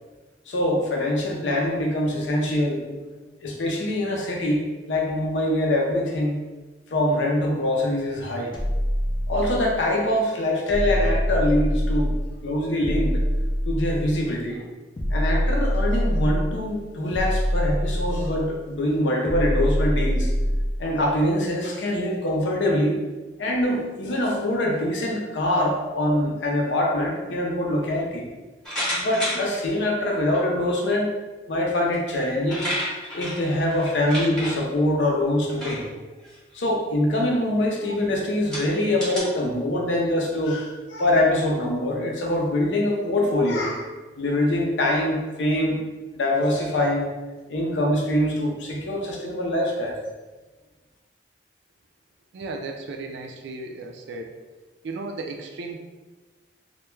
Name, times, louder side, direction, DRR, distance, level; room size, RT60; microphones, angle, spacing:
voice 1, 0.5-3.1 3.4-4.6 4.9-6.4 6.9-8.5 9.3-12.1 12.4-13.2 13.7-14.6 15.1-20.3 20.8-23.0 23.4-28.3 29.0-31.1 31.5-32.7 33.1-35.8 36.5-43.9 44.2-45.8 46.1-47.1 47.5-50.0, left 1 dB, 85° left, 0 dB, 0.5 m, -24 dB
sound 1, 8.5-9.9 10.7-12.3 12.8-14.2 15.0-16.6 17.1-18.5 19.2-20.9, equal, 25° left, 0.3 m, -24 dB
sound 2, 28.6-29.6 30.3-30.4 31.9-32.0 32.2-34.5 35.5-35.8 36.2-36.5 37.2-37.3 38.0-38.1 38.5-39.2, equal, 5° left, 0.7 m, -30 dB
voice 2, 52.3-54.3 54.8-55.8, right 3 dB, 75° right, 5 dB, 0.3 m, -35 dB
2.2 x 2.1 x 3.0 m, 1.2 s
head